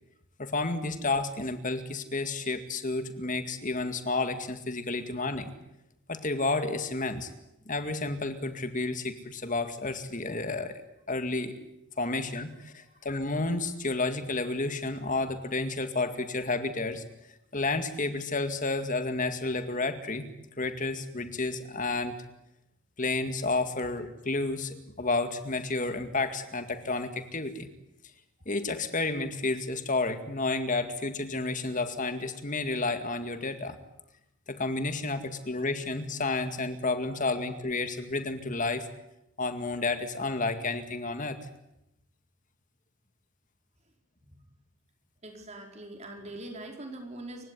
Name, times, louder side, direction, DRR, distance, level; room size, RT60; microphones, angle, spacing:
voice 1, 0.4-5.5 6.1-7.3 7.7-11.6 12.0-17.0 17.5-20.3 20.6-22.2 23.0-27.7 28.5-33.8 34.5-38.9 39.4-41.4, left 3 dB, 35° left, 9 dB, 2.1 m, -31 dB
voice 2, 12.8-13.1 34.5-34.6 45.2-47.5, right 1 dB, 30° right, 3 dB, 4.6 m, -43 dB
28.5 x 16.5 x 9.8 m, 0.87 s
head